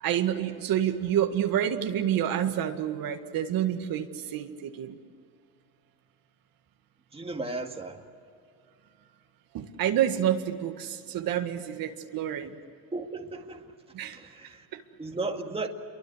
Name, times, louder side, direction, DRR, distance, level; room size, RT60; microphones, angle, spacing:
voice 1, 0.0-5.0 9.5-12.6 13.9-14.2 14.7-14.8, right 10 dB, 65° right, 2.0 m, -28 dB
voice 2, 7.1-8.0 12.9-13.7 14.1-14.7 15.0-15.7, right 3 dB, 15° right, 2.1 m, -35 dB
28.5 x 23.5 x 8.0 m
cardioid pair, 125°, 37 cm